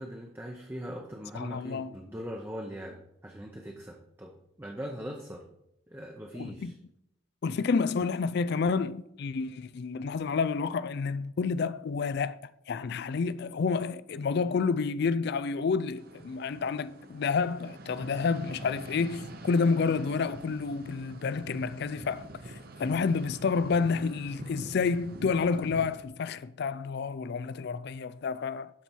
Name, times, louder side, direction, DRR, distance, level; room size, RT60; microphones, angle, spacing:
voice 1, 0.0-4.3 4.6-5.4 5.9-6.7, equal, 10° right, 0.7 m, -40 dB
voice 2, 1.3-1.9 6.3-6.7 7.4-12.4 12.7-28.7, left 5 dB, 50° left, 0.3 m, -29 dB
sound 1, 16.0-26.1, right 2 dB, 45° right, 0.8 m, -45 dB
12.0 x 4.4 x 4.5 m
head